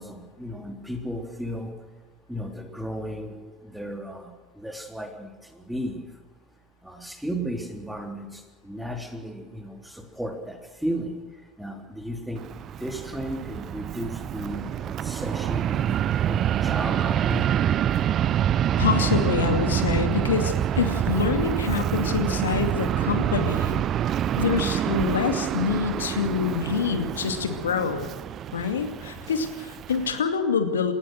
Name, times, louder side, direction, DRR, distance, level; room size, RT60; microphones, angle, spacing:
voice 1, 0.0-1.7 2.3-3.3 3.7-6.0 6.8-11.2 11.6-12.4 12.8-15.9 16.3-17.5 24.5-24.7, equal, 5° right, 3 dB, 3.4 m, -34 dB
Fixed-wing aircraft airplane, 12.4-30.2, right 10 dB, 45° right, 0.6 m, -26 dB
voice 2, 18.8-23.8 24.4-28.1 28.5-30.9, left 6 dB, 80° left, 7 dB, 2.4 m, -26 dB
28.5 x 15.5 x 6.5 m, 1.4 s
figure-of-eight pair, 70°, 0 cm